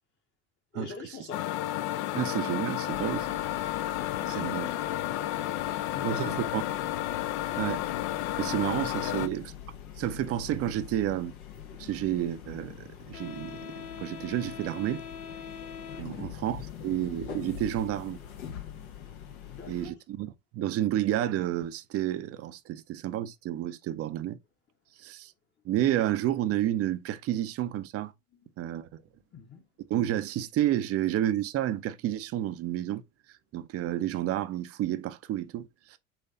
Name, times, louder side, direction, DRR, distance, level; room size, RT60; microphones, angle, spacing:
voice 1, 0.7-1.5 4.2-5.3 5.6-6.5 9.0-9.2 16.0-16.3 19.5-19.9 28.3-28.5 29.3-29.6, left 6 dB, 25° left, 0.9 m, -44 dB
sound 1, 1.3-9.3, left 14 dB, 55° left, 0.5 m, -32 dB
voice 2, 2.1-3.3 4.3-4.7 6.0-6.6 7.6-7.8 8.4-9.4 10.0-11.4 11.8-15.0 16.0-18.2 19.7-24.4 25.0-25.3 25.6-28.1 28.6-28.9 29.9-33.0 33.5-36.0, right 12 dB, 35° right, 0.6 m, -30 dB
sound 2, 2.9-19.9, left 8 dB, 75° left, 0.9 m, -43 dB
5.6 x 3.1 x 2.7 m
figure-of-eight pair, 70°, 43 cm